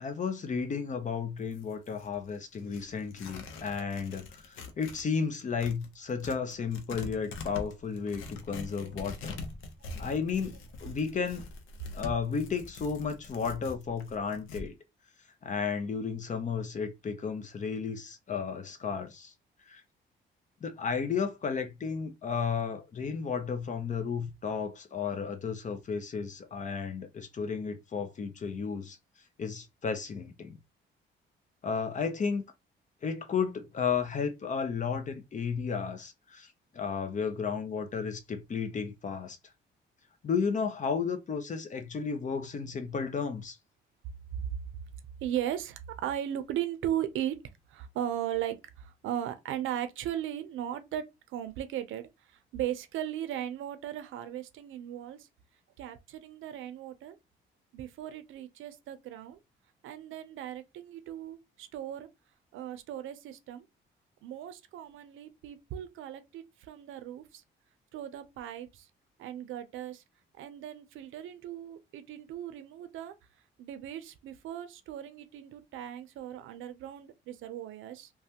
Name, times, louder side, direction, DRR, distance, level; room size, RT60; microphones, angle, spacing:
voice 1, 0.0-9.4 10.0-11.4 11.9-14.7 15.4-19.3 19.7-19.8 20.6-29.0 29.4-30.6 31.6-32.4 33.0-36.5 36.7-39.4 40.2-43.6, left 6 dB, 40° left, 0.6 m, -33 dB
Tearing, 1.4-5.1 5.3-14.7, left 3 dB, 90° left, 0.7 m, -44 dB
voice 2, 45.2-47.4 47.7-52.1 52.5-55.3 55.8-57.2 57.7-59.4 59.8-62.1 62.5-63.6 64.2-67.4 67.9-68.9 69.2-70.0 70.3-73.1 73.6-78.1, right 11 dB, 80° right, 0.6 m, -37 dB
3.2 x 2.2 x 2.8 m
cardioid pair, 90°, 20 cm